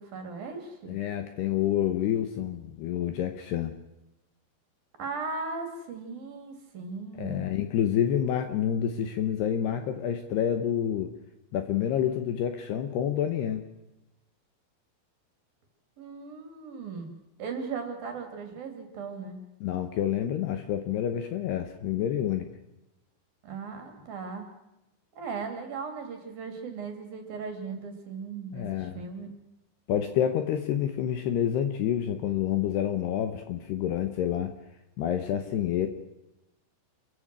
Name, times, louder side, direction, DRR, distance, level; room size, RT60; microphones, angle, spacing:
voice 1, 0.0-1.0 5.0-7.5 16.0-19.4 23.4-24.5 25.2-29.3, right 4 dB, 50° right, 5 dB, 4.2 m, -37 dB
voice 2, 0.9-3.7 7.2-11.1 11.5-13.6 19.6-22.5 28.5-29.0 29.9-34.5 35.0-35.9, left 10 dB, 70° left, 8 dB, 2.7 m, -28 dB
28.5 x 15.0 x 6.2 m, 0.93 s
omnidirectional pair, 5.7 m